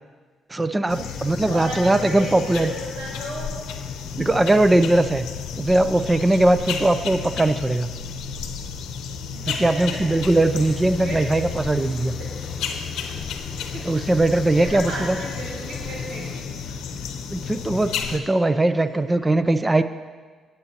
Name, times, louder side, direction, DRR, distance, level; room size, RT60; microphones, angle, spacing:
voice 1, 0.5-2.7 4.2-5.3 5.6-7.9 9.5-12.1 13.8-15.2 17.3-19.8, right 2 dB, 20° right, 11 dB, 0.5 m, -20 dB
sound 1, 0.9-18.2, left 6 dB, 85° left, 0.8 m, -32 dB
voice 2, 1.4-3.5 4.8-4.9 7.2-7.4 9.3-10.1 11.0-11.3 12.2-12.3 13.6-14.2 14.6-16.7 19.1-19.2, right 1 dB, 85° right, -6 dB, 2.7 m, -34 dB
sound 2, 10.2-16.4, left 3 dB, 30° left, 0.9 m, -44 dB
17.5 x 8.1 x 2.9 m, 1.5 s
cardioid pair, 90°, 0 cm